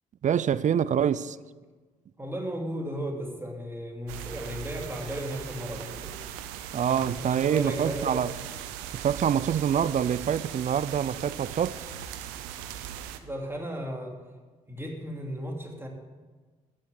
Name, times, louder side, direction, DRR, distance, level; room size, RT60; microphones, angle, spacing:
voice 1, 0.2-1.4 6.7-8.3 8.9-11.9, right 8 dB, 45° right, 0.5 m, -26 dB
voice 2, 2.2-6.1 6.9-8.2 13.2-14.2 14.7-15.9, equal, 15° right, 2.6 m, -35 dB
sound 1, 4.1-13.2, right 10 dB, 85° right, 0.7 m, -39 dB
11.5 x 7.4 x 7.3 m
hypercardioid pair, 50°, 17 cm